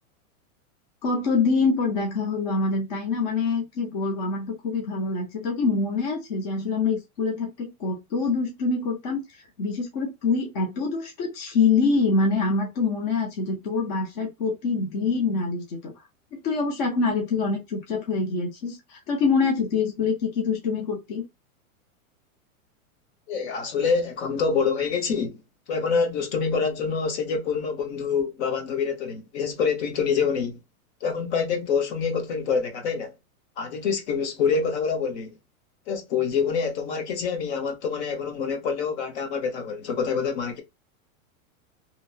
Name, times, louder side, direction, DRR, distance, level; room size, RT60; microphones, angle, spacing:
voice 1, 1.0-15.9 16.3-21.3, left 4 dB, 30° left, 0.5 m, -25 dB
voice 2, 23.3-25.4 25.7-30.6 31.0-33.1 33.6-35.3 35.9-40.6, left 5 dB, 50° left, 0.9 m, -26 dB
2.8 x 2.0 x 2.5 m
supercardioid pair, 155°, 43 cm